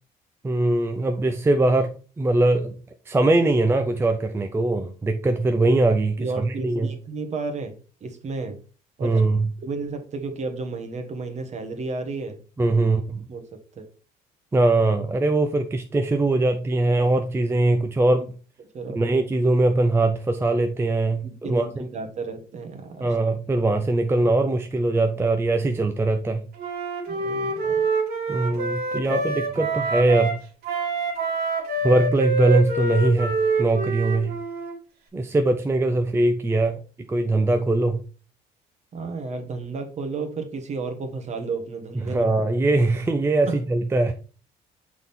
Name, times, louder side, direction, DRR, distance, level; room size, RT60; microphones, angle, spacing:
voice 1, 0.4-2.8 3.1-6.9 9.0-9.5 12.6-13.3 14.5-18.3 19.0-21.9 23.0-26.4 28.3-30.4 31.8-34.4 35.1-36.8 37.1-38.0 42.1-44.1, right 2 dB, 15° right, 6 dB, 0.5 m, -21 dB
voice 2, 6.2-7.7 8.0-8.6 9.0-9.2 9.6-12.4 13.3-13.4 13.8-13.9 18.7-19.0 21.2-23.2 27.1-27.8 28.9-29.2 29.6-29.7 37.1-37.4 38.9-42.3 43.5-43.6, right 3 dB, 40° right, 6 dB, 1.2 m, -32 dB
Wind instrument woodwind instrument, 26.6-30.4 30.6-34.8, right 3 dB, 65° right, 2.0 m, -26 dB
6.0 x 3.7 x 4.2 m, 0.36 s
cardioid pair, 110°, 17 cm